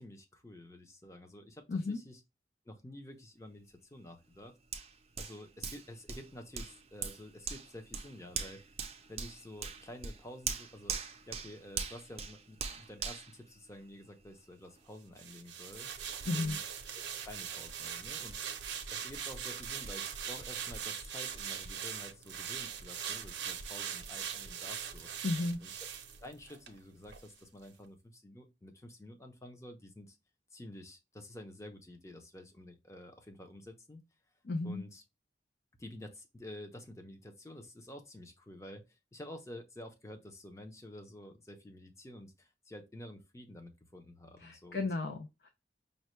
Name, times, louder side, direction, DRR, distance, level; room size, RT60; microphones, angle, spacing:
voice 1, 0.0-2.2 2.7-4.6 5.2-8.6 9.1-11.0 11.3-15.9 16.3-16.6 17.2-18.4 18.9-25.1 25.6-25.7 26.2-30.2 30.5-34.0 34.6-35.0 35.8-44.9, left 1 dB, 15° left, 0.7 m, -50 dB
voice 2, 1.7-2.0 16.3-16.6 25.2-25.6 34.4-34.8 44.4-45.5, left 3 dB, 60° left, 0.5 m, -34 dB
Hands, 4.7-14.2 14.7-14.8, right 6 dB, 35° right, 0.5 m, -42 dB
sound 1, 15.2-26.8 27.1-27.3, right 8 dB, 80° right, 0.6 m, -41 dB
5.3 x 2.2 x 3.1 m
head